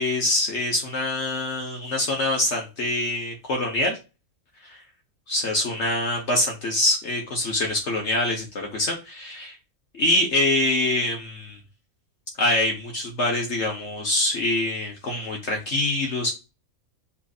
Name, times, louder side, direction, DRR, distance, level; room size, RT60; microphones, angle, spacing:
voice 1, 0.0-4.0 4.6-4.8 5.3-9.6 9.9-11.6 12.4-16.3, left 1 dB, 55° left, 1 dB, 1.3 m, -25 dB
7.3 x 2.6 x 2.4 m, 0.29 s
omnidirectional pair, 1.5 m